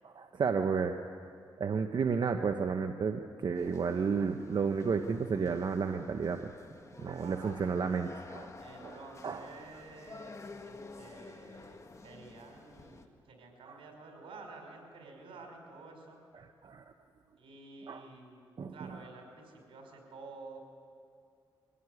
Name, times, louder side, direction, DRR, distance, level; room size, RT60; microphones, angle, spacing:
voice 1, 0.0-1.0 1.6-6.5 7.0-8.5 8.8-9.0 9.2-9.5 16.4-16.8 17.9-18.1 18.6-18.7, right 5 dB, 55° right, 6 dB, 1.0 m, -32 dB
sound 1, 3.5-13.1, left 3 dB, 35° left, 1.9 m, -51 dB
voice 2, 7.2-7.5 8.6-16.2 17.4-20.6, right 3 dB, 90° right, 2 dB, 5.2 m, -51 dB
23.5 x 16.5 x 9.8 m, 2.5 s
cardioid pair, 80°, 9 cm